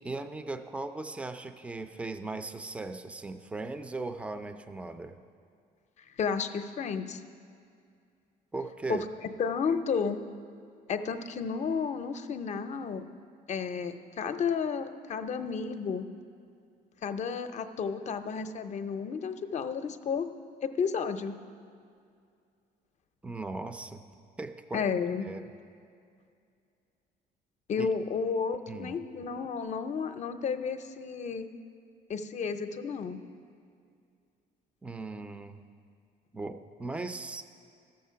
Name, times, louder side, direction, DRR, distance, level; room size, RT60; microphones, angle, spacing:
voice 1, 0.0-5.2 8.5-9.1 23.2-24.0 24.4-24.9 25.3-25.5 27.8-27.9 28.7-29.0 34.8-35.6 36.3-37.4, right 3 dB, 5° right, 9 dB, 0.4 m, -38 dB
voice 2, 6.2-7.2 8.9-9.0 9.4-10.2 10.9-13.0 13.5-16.1 17.0-20.3 20.6-21.3 24.7-25.3 27.7-31.5 32.1-33.2, left 6 dB, 45° left, 9 dB, 0.6 m, -32 dB
13.0 x 6.6 x 5.7 m, 2.3 s
cardioid pair, 110°, 17 cm